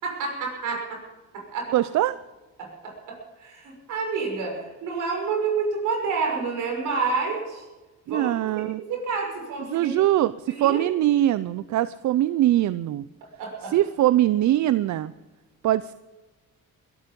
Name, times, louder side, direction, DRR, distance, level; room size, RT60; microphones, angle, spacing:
voice 1, 0.0-1.0 1.3-1.7 2.6-7.6 8.1-8.3 8.8-9.9 10.5-10.8 13.4-13.7, right 4 dB, 85° right, 1 dB, 6.1 m, -29 dB
voice 2, 1.7-2.2 8.1-8.8 9.7-13.1 13.7-15.1 15.6-15.9, right 13 dB, 70° right, 16 dB, 0.6 m, -22 dB
21.5 x 13.0 x 5.3 m, 1.2 s
cardioid pair, 90°, 30 cm